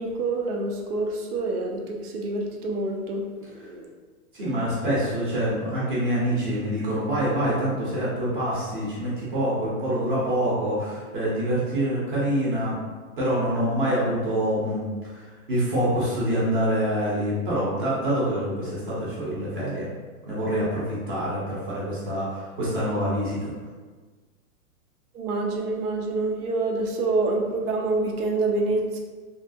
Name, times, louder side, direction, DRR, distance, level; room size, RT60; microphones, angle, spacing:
voice 1, 0.0-3.9 25.1-29.0, right 2 dB, 85° right, 1 dB, 0.8 m, -27 dB
voice 2, 4.3-12.8 13.2-19.9 20.3-23.5, equal, 35° right, -7 dB, 0.8 m, -26 dB
3.1 x 2.4 x 2.7 m, 1.4 s
hypercardioid pair, 170°, 44 cm